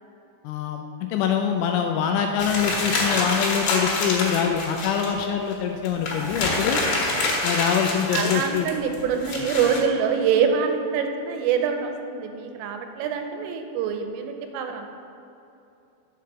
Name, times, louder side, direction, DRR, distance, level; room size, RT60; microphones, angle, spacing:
voice 1, 0.4-6.8 7.4-8.7, left 8 dB, 85° left, 4 dB, 2.8 m, -24 dB
sound 1, 2.4-5.1 5.5-5.6 5.9-9.8, left 2 dB, 65° left, 3.2 m, -26 dB
voice 2, 8.1-14.9, right 6 dB, 85° right, 5 dB, 3.2 m, -25 dB
7.5 x 5.4 x 6.7 m, 2.7 s
omnidirectional pair, 5.8 m